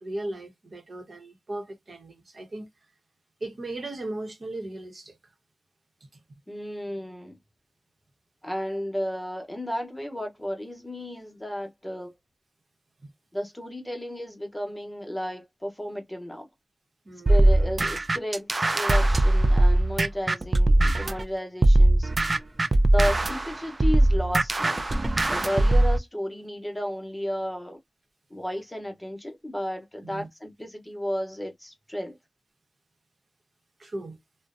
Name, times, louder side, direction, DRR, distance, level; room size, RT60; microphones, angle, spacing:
voice 1, 0.0-2.7 3.4-5.2 13.0-13.1 17.0-17.6 25.4-25.8 30.0-30.3 33.8-34.2, right 2 dB, 60° right, 0.9 m, -37 dB
voice 2, 6.5-7.4 8.4-12.1 13.3-16.5 17.3-22.1 22.9-24.9 25.3-27.8 28.3-32.2, equal, 15° left, 0.8 m, -33 dB
sound 1, 17.3-21.2 21.6-26.0, right 1 dB, 40° right, 0.3 m, -20 dB
2.5 x 2.1 x 2.4 m
wide cardioid pair, 80°, 0 cm